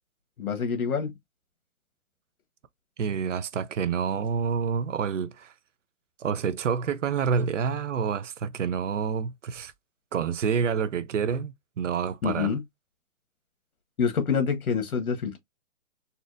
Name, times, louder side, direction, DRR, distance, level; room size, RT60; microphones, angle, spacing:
voice 1, 0.4-1.1 12.2-12.6 14.0-15.4, left 6 dB, 80° left, 1.4 m, -26 dB
voice 2, 3.0-5.5 6.2-9.7 10.1-12.5, right 6 dB, 60° right, 0.5 m, -28 dB
4.2 x 2.5 x 2.4 m
hypercardioid pair, 165°, 43 cm